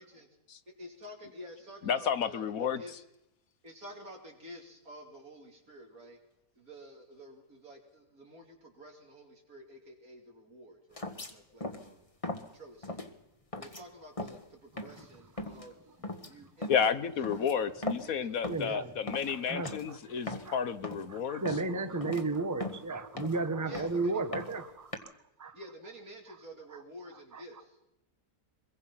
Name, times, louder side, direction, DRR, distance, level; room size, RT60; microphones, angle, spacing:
voice 1, 0.8-3.0 3.6-6.2 6.6-12.1 12.5-13.1 13.6-15.8 16.3-17.6 18.0-18.9 23.7-24.3 25.5-27.8, equal, 70° right, 1 dB, 3.8 m, -50 dB
voice 2, 1.9-2.8 16.7-21.4, left 7 dB, 70° left, 12 dB, 1.4 m, -31 dB
sound 1, 11.0-11.3 11.6-11.9 12.2-12.5 12.8-13.1 13.5-13.8 14.2-14.4 14.8-15.1 15.4-15.7 16.0-16.3 16.6-16.9 17.2-18.2 18.4-18.8 19.1-19.4 19.6-19.9 20.2-20.5 20.8-21.1 21.5-21.7 22.0-22.2 22.6-23.4 23.7-24.0 24.3-25.0, left 1 dB, 25° left, 1.6 m, -39 dB
voice 3, 18.5-18.9 19.3-20.6 21.1-25.1 25.4-25.6 27.3-27.4, right 3 dB, 15° right, 9 dB, 1.2 m, -34 dB
23.5 x 22.0 x 5.7 m, 0.87 s
omnidirectional pair, 1.6 m